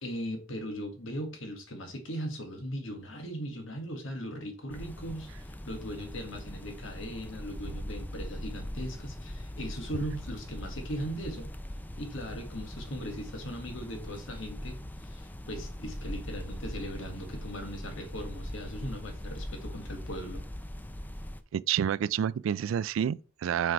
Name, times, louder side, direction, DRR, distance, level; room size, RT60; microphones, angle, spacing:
voice 1, 0.0-11.5 12.0-20.4, equal, 80° left, 1.6 m, -39 dB
sound 1, 4.7-21.4, left 1 dB, 10° left, 0.5 m, -41 dB
voice 2, 21.5-23.7, right 9 dB, 80° right, 0.3 m, -29 dB
6.0 x 4.8 x 4.6 m
head